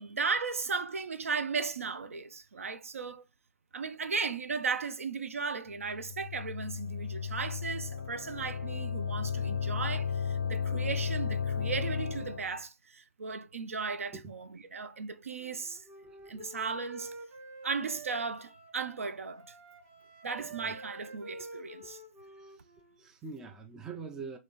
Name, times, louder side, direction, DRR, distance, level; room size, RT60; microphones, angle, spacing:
voice 1, 0.0-3.2 3.7-15.8 16.3-17.1 17.6-19.5 20.2-22.0, right 5 dB, 65° right, 0.5 m, -36 dB
sound 1, 5.8-12.6, left 7 dB, 50° left, 0.5 m, -34 dB
Wind instrument woodwind instrument, 15.4-19.0 19.3-23.0, right 2 dB, 25° right, 1.1 m, -48 dB
voice 2, 16.0-16.5 20.4-20.7 21.4-21.5 21.8-21.9 22.4-22.6 23.0-24.4, right 4 dB, 5° right, 0.3 m, -45 dB
2.9 x 2.8 x 4.0 m
figure-of-eight pair, 130°, 8 cm